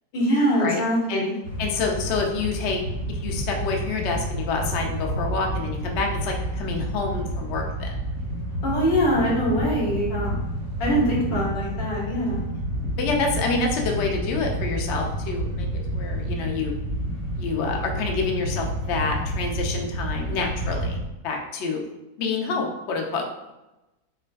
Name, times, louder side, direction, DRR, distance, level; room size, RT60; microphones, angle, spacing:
voice 1, 0.1-1.4 8.6-10.4 10.8-12.4, equal, 85° left, -5 dB, 1.9 m, -23 dB
sound 1, 1.4-21.0, right 1 dB, 45° right, 0.8 m, -29 dB
voice 2, 1.6-2.8 3.2-7.9 13.0-15.7 15.9-16.7 17.3-21.0 21.2-21.8 22.2-23.5, left 4 dB, 60° left, 1 dB, 0.7 m, -27 dB
5.8 x 2.5 x 2.3 m, 0.96 s
omnidirectional pair, 1.9 m